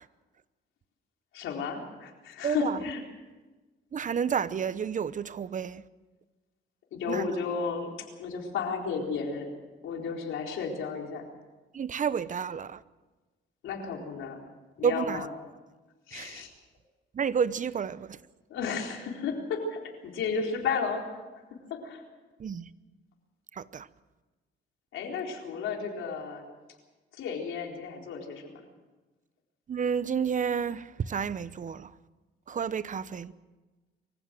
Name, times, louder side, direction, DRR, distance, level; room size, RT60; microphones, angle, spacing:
voice 1, 1.3-3.0 6.9-7.9 8.2-9.5 9.8-11.2 13.6-14.4 14.8-15.3 16.1-16.5 18.5-21.0 21.7-22.0 24.9-26.4 27.2-28.6, left 5 dB, 80° left, 4.1 m, -33 dB
voice 2, 3.9-5.8 7.1-7.3 11.8-12.7 14.8-15.2 16.1-16.3 17.2-18.0 22.4-22.6 23.7-23.8 29.7-30.8 31.1-31.8 32.5-33.3, right 7 dB, 40° right, 0.8 m, -30 dB
24.0 x 15.5 x 7.7 m
cardioid pair, 90°, 20 cm